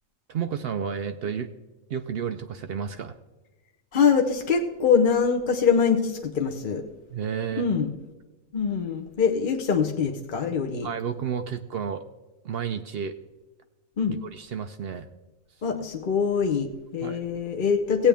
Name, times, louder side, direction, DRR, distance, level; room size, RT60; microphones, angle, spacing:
voice 1, 0.3-1.5 1.9-3.1 7.1-7.7 10.8-12.0 12.4-13.1 14.1-15.1 17.0-17.3, right 7 dB, 90° right, 8 dB, 0.5 m, -31 dB
voice 2, 3.9-6.8 7.6-7.9 8.5-10.9 14.0-14.2 15.6-18.1, left 6 dB, 45° left, 2 dB, 0.7 m, -23 dB
16.0 x 8.7 x 3.4 m, 1.2 s
omnidirectional pair, 1.6 m